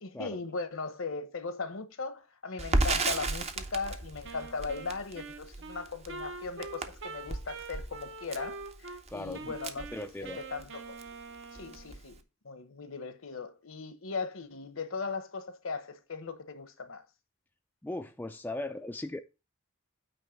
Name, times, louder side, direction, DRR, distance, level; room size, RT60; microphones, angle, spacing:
voice 1, 0.0-8.6 9.1-9.8 10.2-11.0 11.5-12.2 12.4-17.0, left 4 dB, 65° left, 1.0 m, -38 dB
Crackle, 2.6-10.7 11.0-11.1 11.4-12.2, right 2 dB, 30° right, 0.7 m, -34 dB
Wind instrument woodwind instrument, 4.2-9.0 9.3-12.0, right 4 dB, 60° right, 0.9 m, -44 dB
voice 2, 9.1-9.5 9.9-10.4 17.8-19.2, left 2 dB, 10° left, 0.4 m, -38 dB
9.0 x 3.1 x 6.3 m
head